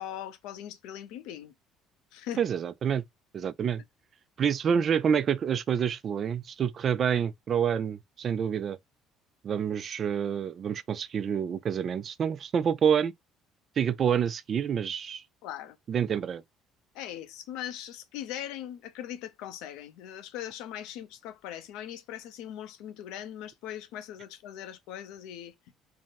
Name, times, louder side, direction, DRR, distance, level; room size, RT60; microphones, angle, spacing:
voice 1, 0.0-1.5 2.1-2.4 15.4-15.8 16.9-25.5, left 11 dB, 85° left, 0.6 m, -40 dB
voice 2, 2.4-3.0 3.3-3.8 4.4-8.8 9.4-13.1 13.8-15.2 15.9-16.4, right 7 dB, 40° right, 0.3 m, -27 dB
3.6 x 2.1 x 4.0 m
cardioid pair, 140°, 0 cm